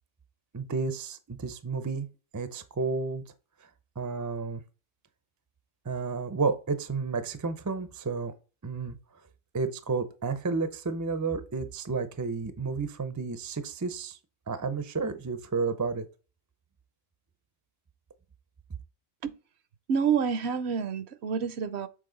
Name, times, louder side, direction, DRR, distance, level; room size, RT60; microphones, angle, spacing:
voice 1, 0.5-2.1 2.3-3.2 4.0-4.6 5.8-8.3 8.6-9.0 9.5-14.2 14.5-16.1, right 4 dB, 25° right, 0.4 m, -31 dB
voice 2, 19.9-21.9, right 6 dB, 65° right, 0.8 m, -28 dB
7.5 x 4.1 x 3.9 m
omnidirectional pair, 1.3 m